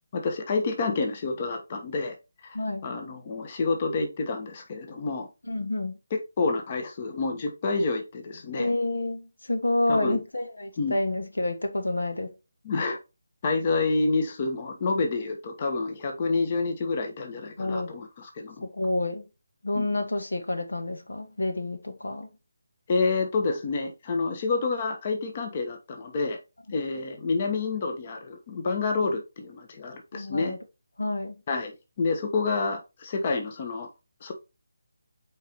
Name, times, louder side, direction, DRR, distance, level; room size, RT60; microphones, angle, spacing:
voice 1, 0.1-2.1 2.4-2.6 2.8-5.3 6.1-8.7 9.9-10.2 10.8-11.0 12.6-13.0 13.4-18.7 19.7-20.0 22.9-26.4 26.7-30.5 31.5-33.9 34.2-34.3, left 3 dB, 35° left, 1.3 m, -28 dB
voice 2, 2.5-2.9 5.5-6.0 8.5-12.3 17.6-17.9 18.7-19.2 19.6-22.3 30.1-30.6 31.0-31.4, left 2 dB, 75° left, 1.6 m, -29 dB
8.1 x 4.7 x 3.1 m
figure-of-eight pair, 155°, 0 cm